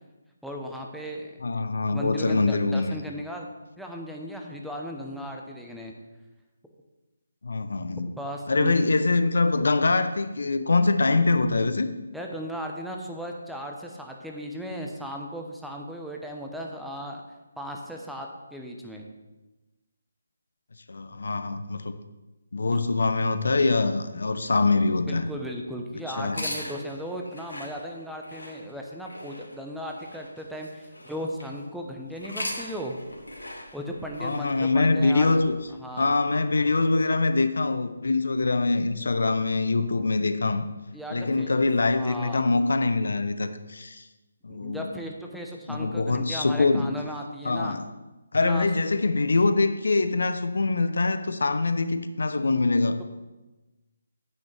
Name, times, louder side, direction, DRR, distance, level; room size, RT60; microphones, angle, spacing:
voice 1, 0.4-1.3 1.9-3.5 3.8-5.9 8.2-8.8 12.1-17.2 17.6-19.0 22.7-22.8 25.0-33.0 33.7-35.3 35.8-36.1 40.9-41.5 41.9-42.5 44.5-47.8 48.4-48.7, equal, ahead, 0 dB, 0.9 m, -36 dB
voice 2, 1.4-3.0 7.4-8.1 8.5-11.9 20.9-22.0 22.5-25.3 26.1-26.4 34.2-35.6 36.0-40.7 41.1-44.1 44.4-44.9 45.7-46.9 47.4-47.8 48.3-53.0, left 3 dB, 65° left, 10 dB, 0.7 m, -24 dB
sound 1, 26.2-31.6 32.1-36.1, left 1 dB, 85° left, 2.4 m, -40 dB
9.6 x 8.7 x 3.3 m, 1.1 s
figure-of-eight pair, 150°, 0 cm